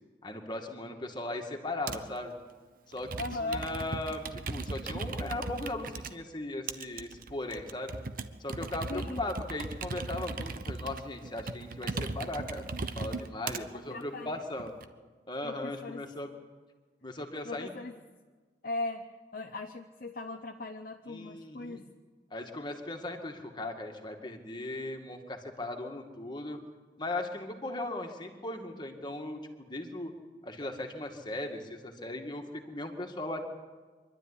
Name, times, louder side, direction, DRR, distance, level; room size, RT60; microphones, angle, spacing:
voice 1, 0.2-2.3 2.9-3.1 3.4-7.9 8.4-14.7 15.3-16.3 17.0-17.7 21.1-21.8 22.3-26.6 27.0-30.1 30.4-33.5, left 2 dB, 25° left, 3 dB, 2.1 m, -38 dB
Computer keyboard, 1.9-2.2 2.9-6.1 6.7-13.6 14.3-14.9, right 3 dB, 50° right, 1.0 m, -38 dB
voice 2, 3.2-3.6 8.9-9.2 13.6-14.4 15.4-16.0 17.4-18.0 18.6-21.9, left 2 dB, 50° left, 5 dB, 0.9 m, -38 dB
24.5 x 12.5 x 10.0 m, 1.4 s
head